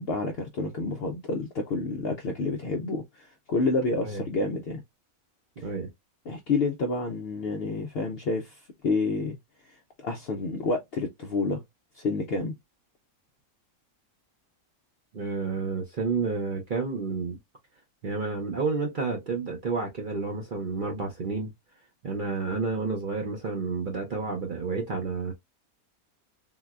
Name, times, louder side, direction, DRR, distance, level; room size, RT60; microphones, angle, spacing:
voice 1, 0.0-4.8 5.6-5.7 6.3-9.4 10.0-11.6 11.9-12.6, left 3 dB, 65° left, 0.6 m, -29 dB
voice 2, 5.6-5.9 15.1-17.4 18.0-21.5 22.0-25.3, right 4 dB, 50° right, 0.6 m, -30 dB
3.8 x 2.1 x 2.3 m
omnidirectional pair, 1.5 m